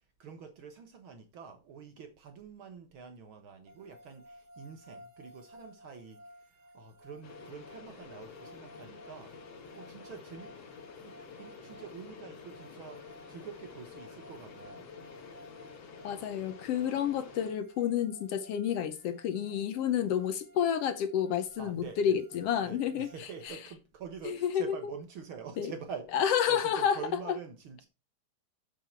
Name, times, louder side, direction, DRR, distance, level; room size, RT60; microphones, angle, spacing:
voice 1, 0.2-9.3 9.7-10.6 11.0-14.8 21.6-22.2 22.6-27.9, right 6 dB, 55° right, 1.5 m, -46 dB
sound 1, 3.7-23.5, equal, 90° right, 3.4 m, -56 dB
sound 2, 7.2-17.5, left 5 dB, 55° left, 2.4 m, -49 dB
voice 2, 16.0-23.6 24.2-24.8 25.6-25.7 26.1-27.0, left 9 dB, 80° left, 1.4 m, -30 dB
7.7 x 6.9 x 4.5 m
omnidirectional pair, 3.7 m